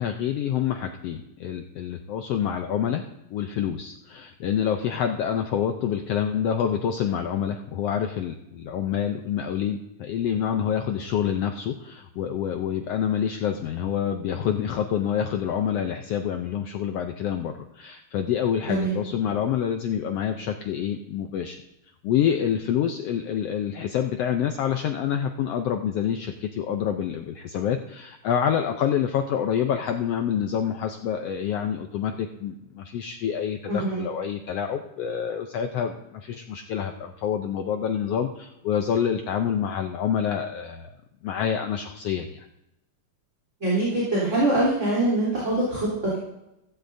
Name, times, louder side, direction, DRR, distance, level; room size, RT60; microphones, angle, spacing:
voice 1, 0.0-3.1 3.3-21.6 22.0-40.9 41.2-42.5, left 8 dB, 85° left, 5 dB, 1.3 m, -27 dB
voice 2, 33.7-34.0 43.6-45.9, right 1 dB, 25° right, -7 dB, 3.5 m, -23 dB
15.5 x 15.0 x 2.6 m, 0.89 s
omnidirectional pair, 3.6 m